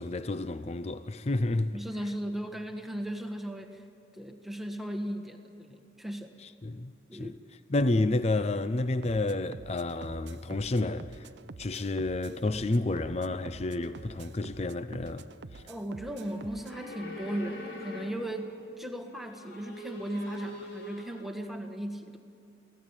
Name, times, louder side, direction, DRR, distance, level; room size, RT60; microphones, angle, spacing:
voice 1, 0.0-1.7 6.4-7.3 7.7-11.2 11.6-15.3 15.5-15.6, left 2 dB, 35° left, 0.5 m, -30 dB
voice 2, 1.7-3.8 4.1-6.3 7.1-7.4 15.7-22.2, right 1 dB, ahead, 1.4 m, -37 dB
sound 1, 9.0-16.8, right 3 dB, 65° right, 0.6 m, -48 dB
sound 2, 16.0-18.5 19.0-21.3, left 1 dB, 65° left, 5.4 m, -44 dB
28.5 x 17.5 x 9.0 m
head